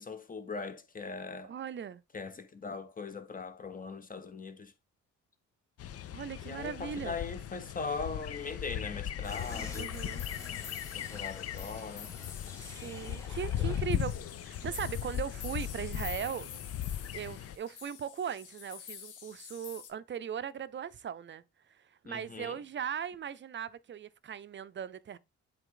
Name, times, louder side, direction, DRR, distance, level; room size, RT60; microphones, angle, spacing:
voice 1, 0.0-1.5 2.1-4.7 6.4-9.9 10.9-12.1 22.0-22.6, left 4 dB, 25° left, 1.1 m, -40 dB
voice 2, 1.4-2.0 6.1-7.2 9.7-10.3 12.6-14.2 14.4-16.5 17.1-21.4 21.7-25.2, right 8 dB, 40° right, 0.6 m, -39 dB
sound 1, 5.8-17.6, left 10 dB, 50° left, 0.6 m, -38 dB
sound 2, 9.2-14.0 14.3-14.4, left 2 dB, 10° left, 2.4 m, -50 dB
sound 3, 9.5-19.9, left 8 dB, 85° left, 1.5 m, -48 dB
8.0 x 3.5 x 3.9 m
cardioid pair, 90°, 30 cm